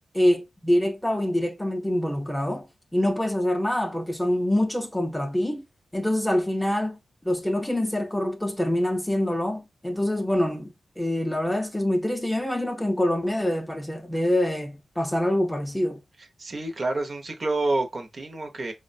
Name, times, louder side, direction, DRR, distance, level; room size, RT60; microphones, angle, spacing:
voice 1, 0.1-2.7 2.9-5.6 5.9-7.0 7.2-10.7 11.0-16.0, left 1 dB, 5° left, 0.5 m, -25 dB
voice 2, 16.4-18.7, right 2 dB, 45° right, 0.6 m, -28 dB
4.8 x 2.1 x 2.5 m
wide cardioid pair, 125°, 0 cm